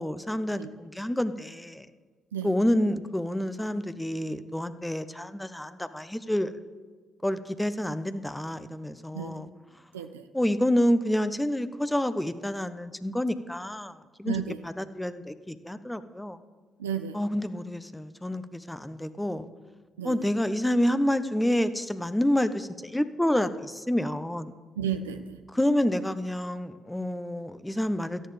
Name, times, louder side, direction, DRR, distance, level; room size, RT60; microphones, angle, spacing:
voice 1, 0.0-1.9 2.4-6.5 7.2-9.5 10.3-14.4 14.6-16.4 17.1-19.4 20.0-24.5 25.5-28.2, left 1 dB, 10° left, 12 dB, 1.0 m, -28 dB
voice 2, 9.1-9.4 9.9-10.3 14.2-14.6 16.8-17.2 20.0-20.3 24.8-25.4, right 8 dB, 90° right, 7 dB, 0.5 m, -33 dB
17.5 x 13.5 x 3.4 m, 1.5 s
hypercardioid pair, 40°, 0 cm